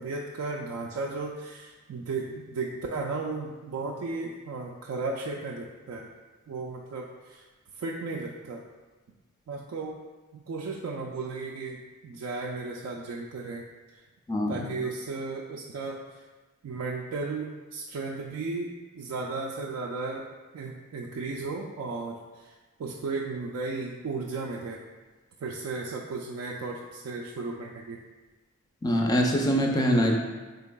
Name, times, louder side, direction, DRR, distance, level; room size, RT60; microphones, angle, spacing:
voice 1, 0.0-6.1 6.5-7.4 7.8-8.6 9.5-10.0 10.5-13.6 14.5-16.0 16.6-20.3 20.5-22.5 22.8-24.8 25.4-28.0, right 3 dB, 75° right, -2 dB, 0.3 m, -35 dB
voice 2, 14.3-14.7 28.8-30.2, equal, 20° left, 1 dB, 0.3 m, -24 dB
3.7 x 3.4 x 2.2 m, 1.2 s
head